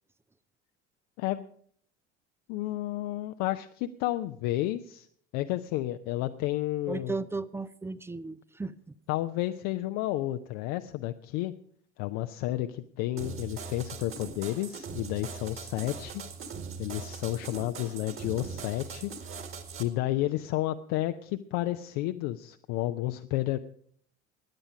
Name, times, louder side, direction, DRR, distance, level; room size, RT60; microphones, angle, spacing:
voice 1, 2.5-5.1 5.3-7.1 9.1-11.5 12.0-16.2 16.8-19.1 19.8-23.6, left 15 dB, 50° left, 0.6 m, -31 dB
voice 2, 6.9-9.0, right 3 dB, 5° right, 0.4 m, -35 dB
sound 1, 13.2-19.8, right 5 dB, 35° right, 2.1 m, -41 dB
16.5 x 10.0 x 5.0 m
figure-of-eight pair, 65°, 35 cm